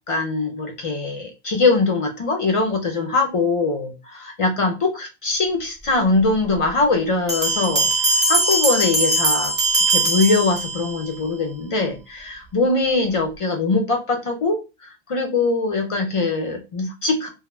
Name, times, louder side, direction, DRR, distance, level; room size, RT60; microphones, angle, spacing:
voice 1, 0.1-9.5 9.9-17.3, left 3 dB, 55° left, 3 dB, 0.3 m, -22 dB
Bell, 7.3-11.1, right 2 dB, 5° right, 0.8 m, -20 dB
2.4 x 2.0 x 3.1 m, 0.28 s
omnidirectional pair, 1.0 m